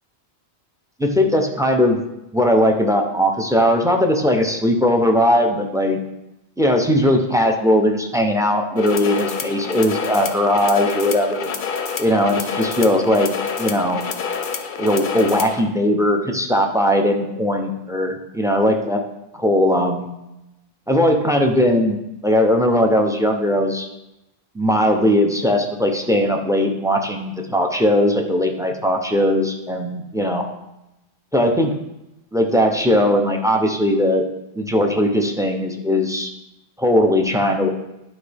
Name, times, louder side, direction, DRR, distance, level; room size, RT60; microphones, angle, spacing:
voice 1, 1.0-2.0 2.3-6.0 6.6-11.5 12.0-13.3 13.6-14.0 14.8-19.0 19.3-20.1 20.9-22.0 22.2-23.9 24.5-30.4 31.3-31.7 32.3-34.2 34.5-36.3 36.8-37.7, left 1 dB, 5° right, 3 dB, 0.6 m, -19 dB
sound 1, 8.8-15.6, left 5 dB, 55° left, 0.7 m, -28 dB
11.0 x 4.2 x 3.5 m, 0.91 s
omnidirectional pair, 1.1 m